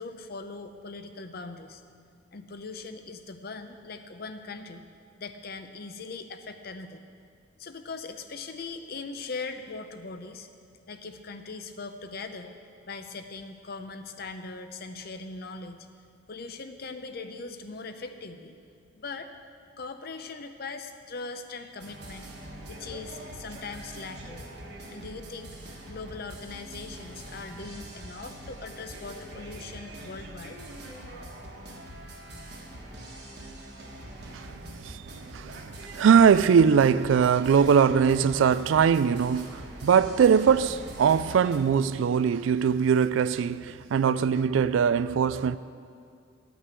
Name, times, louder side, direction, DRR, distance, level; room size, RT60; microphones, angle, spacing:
voice 1, 0.0-1.8 2.3-4.9 5.2-7.0 7.6-10.5 10.9-12.5 12.9-15.9 16.3-18.6 18.9-19.3 19.8-22.3 22.7-24.5 24.9-25.6 25.9-30.6, left 4 dB, 50° left, 0.7 m, -40 dB
sound 1, 21.8-41.6, right 1 dB, 55° right, 1.5 m, -43 dB
voice 2, 34.8-35.7 35.9-45.6, right 7 dB, 70° right, 0.3 m, -21 dB
11.0 x 6.1 x 8.2 m
head